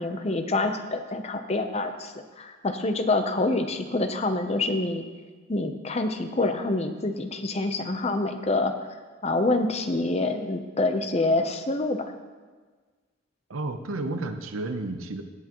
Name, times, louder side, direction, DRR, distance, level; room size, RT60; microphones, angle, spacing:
voice 1, 0.0-5.0 5.5-8.7 9.2-12.1, left 2 dB, 30° left, 7 dB, 0.7 m, -26 dB
voice 2, 13.5-15.2, right 2 dB, 85° right, 7 dB, 0.8 m, -31 dB
16.5 x 8.3 x 3.0 m, 1.4 s
head